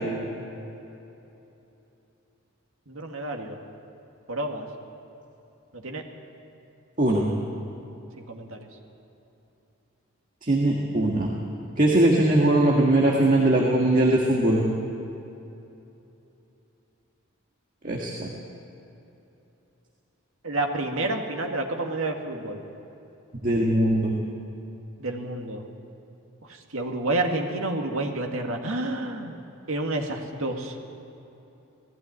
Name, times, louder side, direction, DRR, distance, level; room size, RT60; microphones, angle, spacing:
voice 1, 2.9-3.6 4.3-4.7 5.7-6.0 8.2-8.7 20.4-22.6 25.0-25.7 26.7-29.4 29.7-30.8, right 2 dB, 70° right, 2 dB, 2.0 m, -29 dB
voice 2, 10.4-11.3 11.8-14.6 17.8-18.3 23.4-24.2, right 1 dB, 35° right, -2 dB, 1.8 m, -20 dB
18.0 x 15.5 x 9.5 m, 2.9 s
head